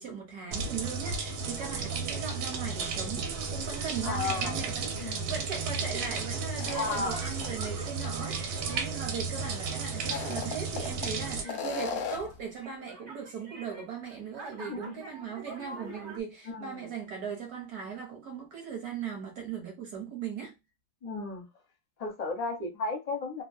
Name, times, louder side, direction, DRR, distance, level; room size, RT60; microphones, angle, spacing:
voice 1, 0.0-20.5, right 6 dB, 55° right, 1.3 m, -39 dB
sound 1, 0.5-11.4, right 4 dB, 80° right, 1.4 m, -34 dB
sound 2, 1.6-16.2, right 3 dB, 40° right, 0.8 m, -48 dB
voice 2, 4.0-4.6 5.0-5.3 6.7-7.2 11.4-11.8 14.6-14.9 16.5-16.9 21.0-21.5 22.0-23.4, left 3 dB, 45° left, 0.5 m, -34 dB
sound 3, 6.6-7.7 8.0-8.1 10.0-11.1 11.5-12.4, left 6 dB, 90° left, 0.7 m, -36 dB
3.3 x 2.2 x 2.5 m
omnidirectional pair, 2.3 m